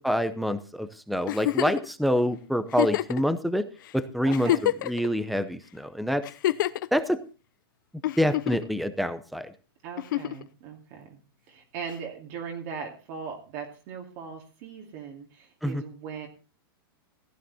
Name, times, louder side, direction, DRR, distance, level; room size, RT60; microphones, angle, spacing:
voice 1, 0.0-3.7 3.9-6.2 6.9-7.2 8.2-9.5 15.6-15.8, equal, ahead, 13 dB, 0.7 m, -26 dB
Giggle, 1.3-1.9 2.7-3.2 3.8-3.9 4.3-5.1 6.2-6.9 8.0-8.7 10.0-10.4 11.9-12.0, left 14 dB, 60° left, 0.8 m, -27 dB
voice 2, 4.2-4.6 9.8-11.2 11.5-16.3, right 6 dB, 35° right, 2 dB, 2.4 m, -39 dB
15.5 x 9.8 x 4.1 m, 0.34 s
supercardioid pair, 170°, 12 cm